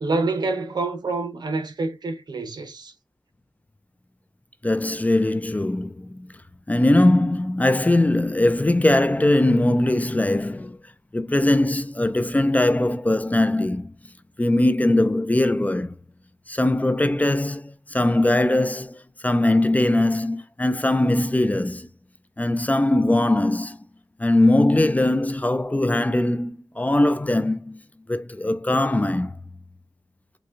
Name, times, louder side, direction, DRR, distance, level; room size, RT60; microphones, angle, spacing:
voice 1, 0.0-2.9, right 3 dB, 65° right, 0.8 m, -27 dB
voice 2, 4.6-6.3 6.7-10.8 11.1-13.9 14.4-15.9 16.5-21.9 22.4-23.8 24.2-27.8 28.1-29.4, left 1 dB, 20° left, 0.4 m, -21 dB
4.9 x 2.3 x 2.5 m
cardioid pair, 60°, 8 cm